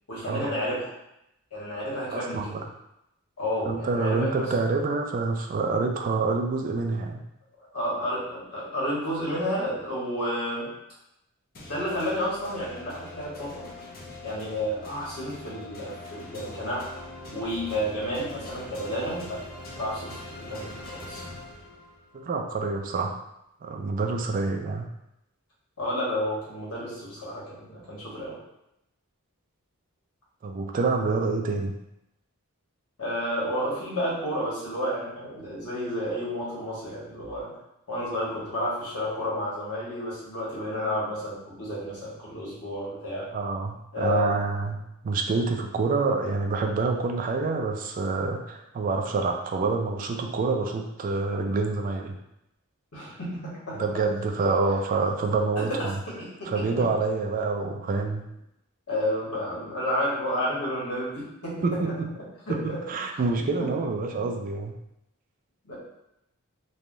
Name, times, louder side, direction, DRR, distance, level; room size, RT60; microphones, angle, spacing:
voice 1, 0.1-0.9 1.5-2.6 3.4-4.5 7.6-10.7 11.7-13.7 14.2-16.9 17.3-19.4 19.8-21.2 25.8-28.4 33.0-37.5 37.9-43.3 43.9-44.3 52.9-53.9 55.6-56.9 58.9-61.9 62.5-62.8 63.6-63.8 64.1-64.3 65.6-65.8, equal, 90° left, -6 dB, 1.2 m, -31 dB
voice 2, 2.1-2.6 3.7-7.2 22.1-23.2 23.6-24.9 30.4-31.7 43.3-52.2 53.7-56.0 56.5-58.3 61.6-62.1 62.5-64.8, right 3 dB, 40° right, 3 dB, 0.3 m, -27 dB
sound 1, 11.5-22.1, left 2 dB, 45° left, 0.6 m, -42 dB
3.3 x 2.2 x 2.5 m, 0.84 s
head